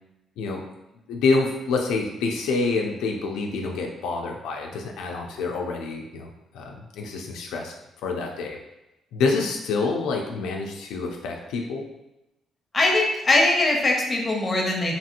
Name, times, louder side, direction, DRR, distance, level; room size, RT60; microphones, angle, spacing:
voice 1, 1.1-7.7 8.0-8.6 9.1-11.9, left 4 dB, 90° left, 1 dB, 0.3 m, -27 dB
voice 2, 12.7-15.0, left 2 dB, 30° left, 0 dB, 0.7 m, -21 dB
2.9 x 2.7 x 2.5 m, 0.93 s
cardioid pair, 90°, 0 cm